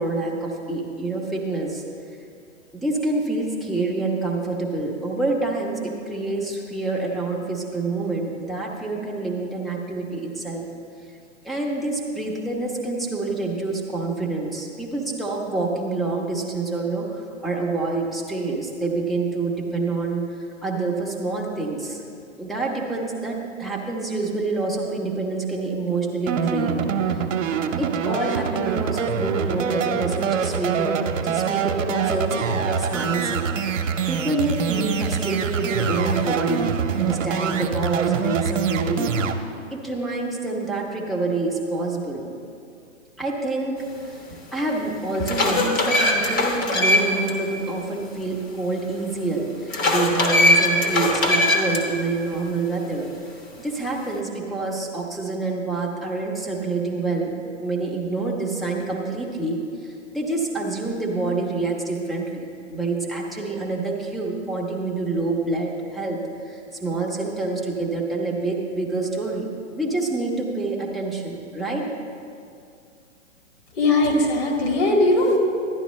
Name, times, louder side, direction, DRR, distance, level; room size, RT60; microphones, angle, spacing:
voice 1, 0.0-1.8 2.7-10.7 11.4-20.2 20.6-22.0 22.4-27.3 27.8-33.7 34.1-39.1 39.7-42.3 43.2-43.8 44.0-44.2 44.5-53.1 53.6-66.2 66.5-71.8, right 3 dB, ahead, -2 dB, 0.7 m, -27 dB
sound 1, 26.3-39.3, right 6 dB, 70° right, 0.8 m, -25 dB
sound 2, 44.3-44.4 44.9-47.3 47.7-47.8 49.7-51.8, left 1 dB, 25° left, 1.0 m, -20 dB
voice 2, 73.7-75.4, left 2 dB, 50° left, -1 dB, 2.1 m, -19 dB
12.0 x 9.8 x 3.1 m, 2.4 s
hypercardioid pair, 130°, 38 cm